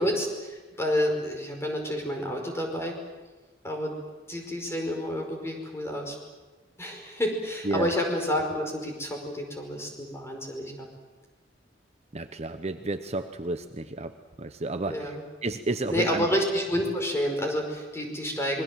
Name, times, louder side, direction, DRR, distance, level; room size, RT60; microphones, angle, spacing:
voice 1, 0.0-2.9 3.6-3.9 4.3-6.1 6.8-10.9 14.9-15.2 15.9-18.6, equal, 15° left, 2 dB, 5.1 m, -29 dB
voice 2, 12.1-14.1 14.4-15.1 15.4-16.3, right 2 dB, 35° right, 8 dB, 0.9 m, -31 dB
27.0 x 22.0 x 7.5 m, 1.2 s
head